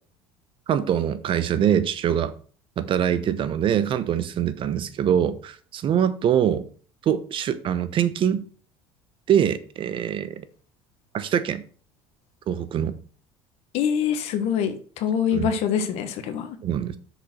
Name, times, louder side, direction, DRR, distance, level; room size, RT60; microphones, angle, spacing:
voice 1, 0.7-2.3 2.8-6.7 7.0-8.4 9.3-10.4 11.1-11.6 12.5-13.0 15.3-15.5 16.6-17.0, right 9 dB, 45° right, 0.9 m, -23 dB
voice 2, 13.7-16.6, left 8 dB, 65° left, 1.3 m, -25 dB
6.3 x 5.2 x 6.2 m
supercardioid pair, 95°, 12 cm